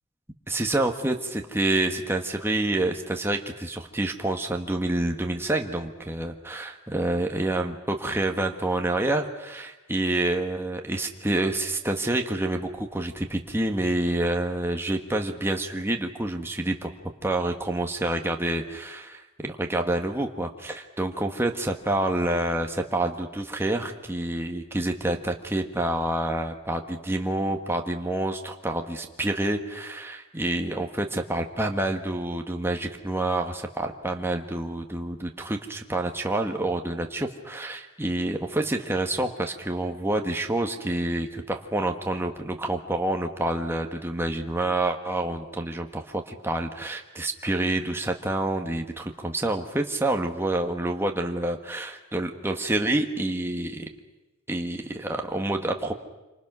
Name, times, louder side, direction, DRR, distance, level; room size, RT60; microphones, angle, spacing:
voice 1, 0.5-16.9 17.2-53.9 54.5-55.9, right 1 dB, 10° right, 3 dB, 1.5 m, -28 dB
27.5 x 25.5 x 6.1 m, 1.1 s
head